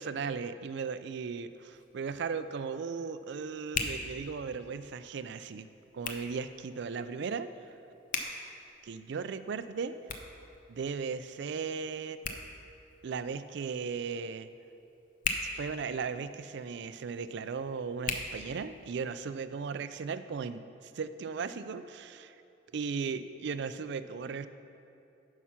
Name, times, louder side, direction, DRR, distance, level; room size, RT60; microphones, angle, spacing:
voice 1, 0.0-5.7 5.9-7.5 8.8-9.9 10.7-12.2 13.0-14.5 15.4-22.4 22.7-24.5, right 5 dB, 65° right, 12 dB, 0.4 m, -37 dB
Hands, 1.5-19.1, left 4 dB, 45° left, 0.7 m, -43 dB
9.4 x 5.7 x 5.7 m, 2.7 s
head